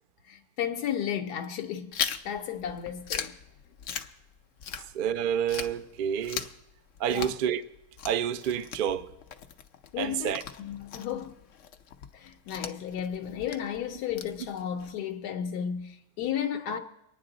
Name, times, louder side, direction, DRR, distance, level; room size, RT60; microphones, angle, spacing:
voice 1, 0.2-1.9 2.2-3.3 4.7-4.8 7.1-7.4 9.9-11.3 12.1-16.8, left 9 dB, 85° left, 1.2 m, -33 dB
Chewing mastication, 1.9-5.2 5.5-14.9, left 8 dB, 60° left, 0.9 m, -39 dB
voice 2, 4.9-6.5 7.0-7.6 8.1-9.1 10.0-10.4, right 9 dB, 75° right, 0.4 m, -29 dB
24.0 x 9.7 x 3.8 m
omnidirectional pair, 1.7 m